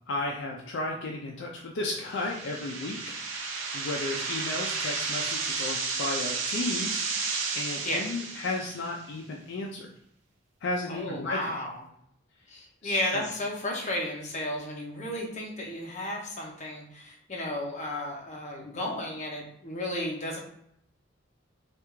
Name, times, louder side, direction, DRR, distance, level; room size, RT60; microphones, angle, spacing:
voice 1, 0.1-3.0 3.7-7.0 7.5-9.9 10.6-11.4 12.8-13.0, left 2 dB, 65° left, 0 dB, 0.4 m, -33 dB
sound 1, 2.0-9.0, right 4 dB, 90° right, 0.6 m, -32 dB
voice 2, 10.9-11.8 12.5-20.4, left 1 dB, 40° left, 0 dB, 0.8 m, -33 dB
3.3 x 2.4 x 3.0 m, 0.71 s
head